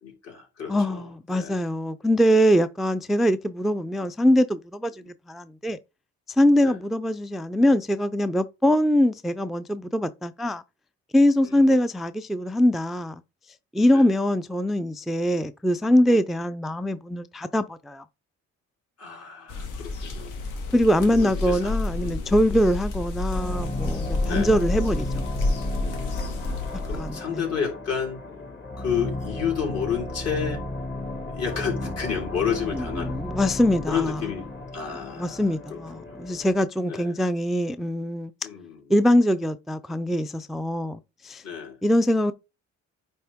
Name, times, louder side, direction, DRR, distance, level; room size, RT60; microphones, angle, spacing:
voice 1, 0.0-1.6 5.0-5.1 6.6-6.8 11.4-11.7 13.9-14.1 19.0-20.4 21.1-21.7 22.0-22.3 24.2-24.5 25.8-28.2 28.8-30.6 31.2-33.2 33.9-34.5 34.7-36.2 36.9-37.2 38.4-38.9 41.4-41.8, left 7 dB, 55° left, 3.7 m, -31 dB
voice 2, 0.7-5.8 6.4-10.6 11.1-13.1 13.7-18.0 20.7-25.1 27.0-27.1 32.7-32.8 33.1-34.2 35.2-38.3 38.9-41.4 41.8-42.3, left 1 dB, ahead, 0.3 m, -23 dB
sound 1, 19.5-27.1, left 2 dB, 85° left, 1.5 m, -29 dB
sound 2, 23.3-36.6, left 2 dB, 35° left, 1.7 m, -35 dB
9.3 x 3.4 x 3.5 m
cardioid pair, 90°, 30 cm